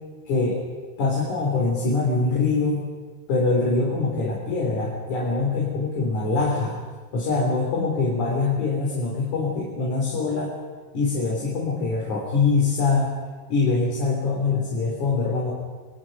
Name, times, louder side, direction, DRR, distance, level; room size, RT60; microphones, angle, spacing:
voice 1, 0.3-0.6 1.0-2.8 3.3-6.8 7.1-10.5 10.9-13.1 13.5-15.5, left 3 dB, 50° left, -3 dB, 4.4 m, -23 dB
29.5 x 20.5 x 5.3 m, 1.4 s
omnidirectional pair, 4.7 m